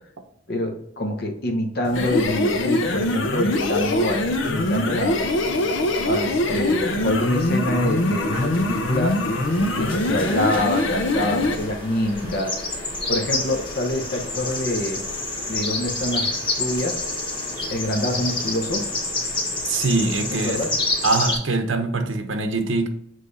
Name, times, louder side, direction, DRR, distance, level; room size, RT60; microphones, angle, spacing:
voice 1, 0.5-5.2 6.0-9.1 9.6-12.5 13.1-15.0 15.5-16.3 16.6-17.0 17.7-18.8 20.4-20.7, left 1 dB, 50° left, 3 dB, 0.9 m, -26 dB
sound 1, 1.8-11.6, left 1 dB, 75° left, 0.8 m, -23 dB
sound 2, 3.9-21.4, left 2 dB, 25° left, 1.6 m, -30 dB
voice 2, 19.7-20.6 21.0-22.9, right 3 dB, 75° right, 7 dB, 0.9 m, -23 dB
7.6 x 3.3 x 4.0 m, 0.72 s
head